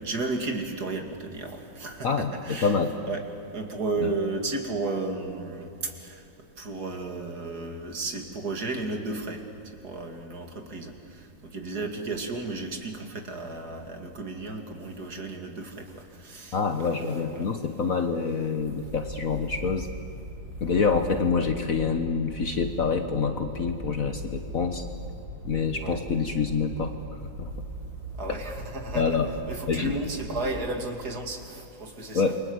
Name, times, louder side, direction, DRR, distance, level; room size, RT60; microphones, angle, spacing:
voice 1, 0.0-2.8 3.1-3.2 3.5-6.2 6.6-9.4 9.8-10.9 11.5-17.5 25.8-26.0 28.2-29.2 29.5-32.3, right 3 dB, 50° right, 4 dB, 2.8 m, -33 dB
voice 2, 2.0-2.9 4.0-4.1 16.5-19.9 20.6-24.8 25.4-26.9 27.4-27.5 28.9-29.3 29.7-29.9 32.1-32.4, left 5 dB, 50° left, 7 dB, 1.4 m, -26 dB
sound 1, 18.6-30.6, right 1 dB, 80° right, 7.5 m, -39 dB
28.5 x 24.0 x 8.0 m, 2.8 s
omnidirectional pair, 2.2 m